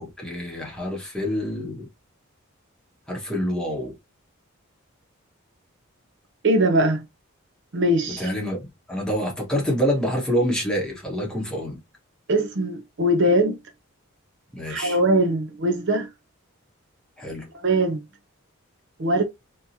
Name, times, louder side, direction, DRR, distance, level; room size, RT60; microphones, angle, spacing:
voice 1, 0.0-1.9 3.1-3.9 8.1-11.8 14.5-15.0 17.2-17.5, equal, 5° left, 1.4 m, -27 dB
voice 2, 6.4-7.1 7.7-8.3 12.3-13.6 14.7-16.1 17.5-18.1 19.0-19.2, right 1 dB, 55° right, 0.6 m, -21 dB
3.6 x 3.0 x 2.8 m
head